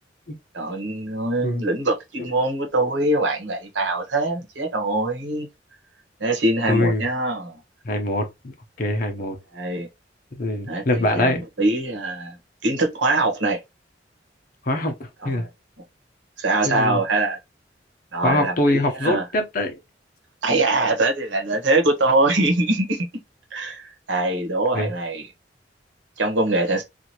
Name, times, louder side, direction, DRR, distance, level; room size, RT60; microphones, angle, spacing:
voice 1, 0.5-5.5 6.2-7.6 9.5-9.9 10.7-10.8 11.1-12.4 12.6-13.6 15.3-15.4 16.4-17.4 18.1-19.2 20.4-23.1 23.5-25.2 26.2-26.8, right 2 dB, 90° right, 1.0 m, -23 dB
voice 2, 6.7-7.0 7.8-9.4 10.3-11.4 14.6-15.5 16.6-17.0 18.2-19.8 24.7-24.9, left 1 dB, 50° left, 0.8 m, -23 dB
2.7 x 2.5 x 2.9 m
head